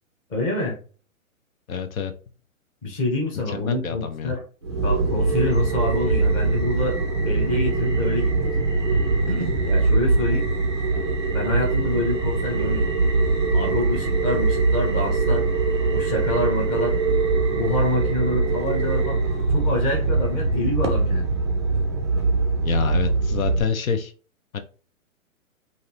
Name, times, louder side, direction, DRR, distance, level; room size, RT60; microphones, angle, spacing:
voice 1, 0.3-0.8 2.8-4.4 4.8-8.5 9.3-10.5 11.3-12.9 13.5-15.4 15.9-17.0 17.5-19.2 19.5-21.3, left 2 dB, 15° left, -1 dB, 0.9 m, -27 dB
voice 2, 1.7-2.1 3.5-4.3 22.6-24.1 24.5-24.6, left 6 dB, 70° left, 7 dB, 0.8 m, -27 dB
sound 1, 4.6-23.6, right 3 dB, 20° right, 0.3 m, -22 dB
5.2 x 2.7 x 2.9 m, 0.39 s
hypercardioid pair, 155°, 42 cm